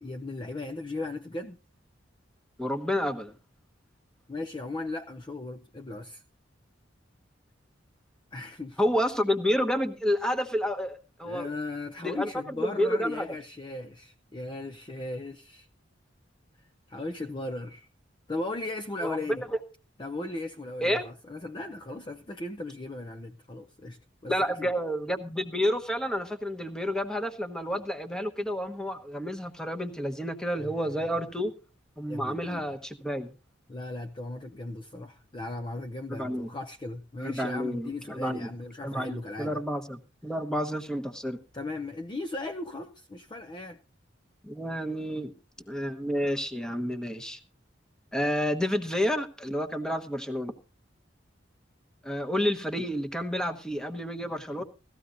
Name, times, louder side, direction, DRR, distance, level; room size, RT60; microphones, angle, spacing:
voice 1, 0.0-1.6 4.3-6.2 8.3-8.8 11.2-15.7 16.9-17.9 18.3-19.4 20.0-24.7 30.6-31.1 32.1-32.8 33.7-39.6 41.5-43.8, left 2 dB, 25° left, 0.6 m, -37 dB
voice 2, 2.6-3.3 8.8-11.5 12.0-13.3 19.0-19.5 20.8-21.0 24.3-31.5 32.0-33.3 36.1-36.5 37.2-38.5 38.8-41.4 44.4-45.3 45.7-47.4 48.1-50.5 52.0-54.6, equal, 5° left, 1.1 m, -30 dB
17.0 x 14.0 x 2.6 m
head